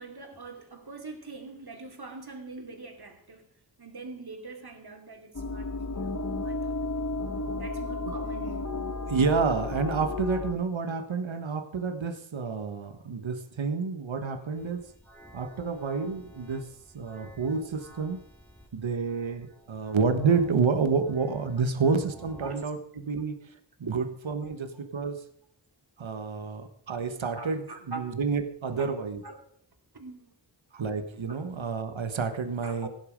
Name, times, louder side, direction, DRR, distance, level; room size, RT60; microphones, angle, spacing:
voice 1, 0.0-3.5 3.8-6.9 7.6-8.7 22.4-22.6 23.8-23.9 24.4-24.6 27.4-28.1 28.7-28.9 29.2-29.4 29.9-30.4 31.3-31.4 32.6-32.9, right 3 dB, 55° right, 4 dB, 3.0 m, -43 dB
sound 1, 5.3-10.5, left 3 dB, 40° left, 1.5 m, -33 dB
voice 2, 9.1-14.9 15.3-16.7 16.9-18.2 18.7-23.5 23.8-25.3 26.0-29.2 30.7-32.9, right 5 dB, 90° right, 9 dB, 1.4 m, -29 dB
sound 2, 14.5-22.7, equal, 5° left, 3.4 m, -52 dB
16.5 x 10.5 x 5.1 m, 0.63 s
wide cardioid pair, 65°, 45 cm